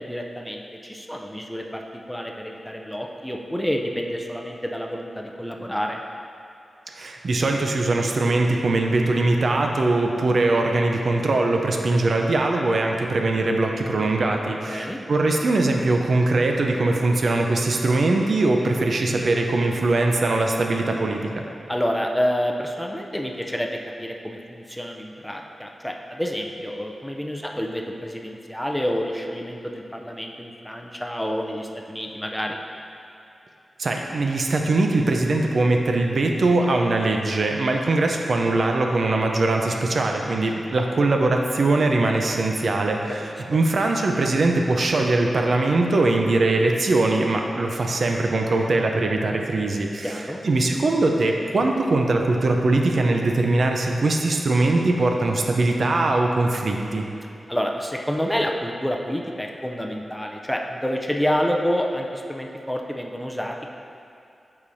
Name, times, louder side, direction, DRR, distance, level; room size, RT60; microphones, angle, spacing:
voice 1, 0.0-6.0 14.7-15.0 21.7-32.6 43.2-43.3 50.0-50.4 57.5-63.7, equal, 5° left, 1 dB, 0.5 m, -28 dB
voice 2, 6.9-21.4 33.8-57.1, right 2 dB, 65° right, 2 dB, 0.5 m, -21 dB
8.4 x 4.9 x 2.6 m, 2.6 s
wide cardioid pair, 85°, 0 cm